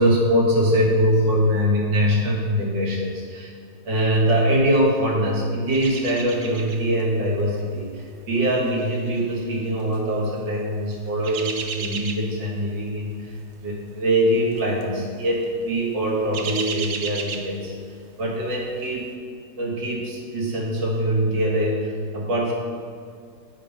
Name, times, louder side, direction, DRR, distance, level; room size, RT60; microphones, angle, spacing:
voice 1, 0.0-3.5 3.8-13.3 13.6-17.7 18.2-19.1 19.6-22.5, equal, 90° right, -4 dB, 2.1 m, -23 dB
sound 1, 5.7-7.0 7.3-7.6 8.3-10.0 10.9-12.5 12.8-13.1 13.4-13.5 14.5-14.9 15.2-15.4 15.8-18.1 18.5-18.6, right 5 dB, 70° right, 0.6 m, -34 dB
7.7 x 5.1 x 5.1 m, 2.2 s
omnidirectional pair, 1.9 m